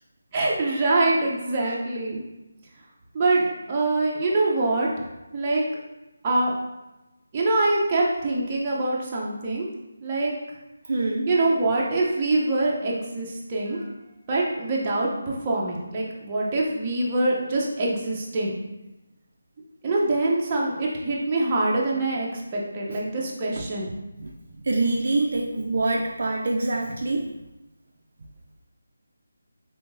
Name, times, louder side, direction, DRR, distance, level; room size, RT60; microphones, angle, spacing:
voice 1, 0.3-2.2 3.1-4.9 5.3-5.6 6.2-6.5 7.3-9.7 10.0-10.3 11.3-13.9 14.3-18.5 19.8-23.9, right 2 dB, 25° right, -4 dB, 0.7 m, -24 dB
voice 2, 10.9-11.3 22.9-23.0 23.6-23.7 24.2-27.3, right 2 dB, 60° right, 0 dB, 0.4 m, -25 dB
3.6 x 3.4 x 2.6 m, 1.0 s
figure-of-eight pair, 165°, 0 cm